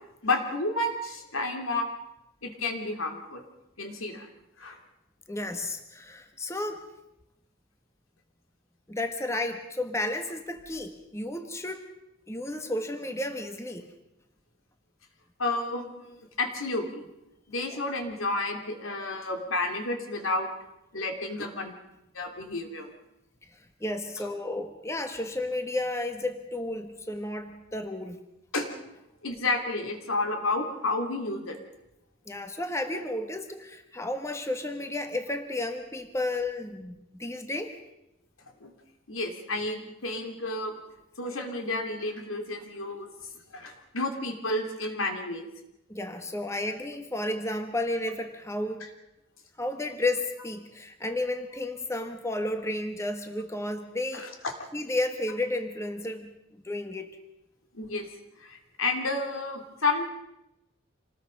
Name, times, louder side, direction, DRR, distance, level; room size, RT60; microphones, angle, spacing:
voice 1, 0.2-1.8 2.4-3.4 3.8-4.3 4.6-4.8 15.4-17.0 17.5-20.5 20.9-21.7 22.1-22.9 28.5-28.7 29.2-31.6 38.6-38.7 39.1-40.7 41.2-43.1 43.5-45.5 54.1-54.5 57.7-58.1 58.4-60.1, left 2 dB, 85° left, 4 dB, 3.1 m, -31 dB
voice 2, 5.3-6.9 8.9-11.9 12.3-13.9 23.8-28.2 32.3-37.7 45.9-48.9 49.6-54.3 54.7-57.1, left 2 dB, 15° left, 6 dB, 1.2 m, -32 dB
27.0 x 20.0 x 5.3 m, 0.89 s
head